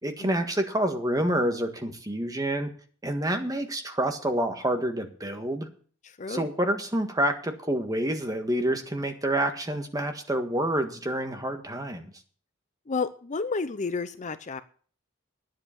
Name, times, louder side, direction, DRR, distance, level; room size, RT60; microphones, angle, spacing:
voice 1, 0.0-2.7 3.0-5.7 6.3-12.1, right 1 dB, 20° right, 6 dB, 1.6 m, -28 dB
voice 2, 6.0-6.5 12.9-14.6, left 4 dB, 35° left, 12 dB, 0.6 m, -31 dB
10.0 x 7.8 x 8.3 m, 0.44 s
head